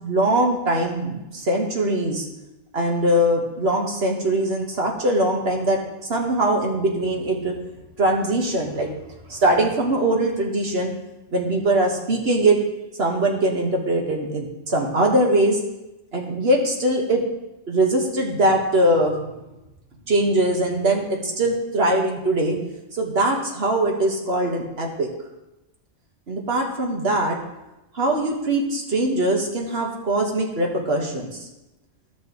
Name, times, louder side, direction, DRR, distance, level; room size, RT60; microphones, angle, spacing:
voice 1, 0.0-2.3 2.7-7.6 8.0-8.9 9.3-10.9 11.3-12.6 13.0-15.6 16.1-17.2 17.7-19.2 20.1-22.6 22.9-25.1 26.3-27.4 27.9-31.5, right 1 dB, 55° right, 0 dB, 1.5 m, -21 dB
12.5 x 6.2 x 3.0 m, 0.96 s
omnidirectional pair, 1.3 m